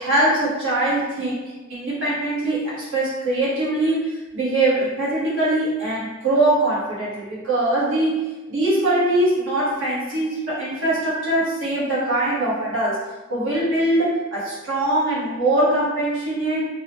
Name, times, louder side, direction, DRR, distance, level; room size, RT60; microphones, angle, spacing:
voice 1, 0.0-1.4 1.7-13.0 13.3-16.7, right 1 dB, 70° right, -8 dB, 1.0 m, -22 dB
2.7 x 2.0 x 2.9 m, 1.1 s
head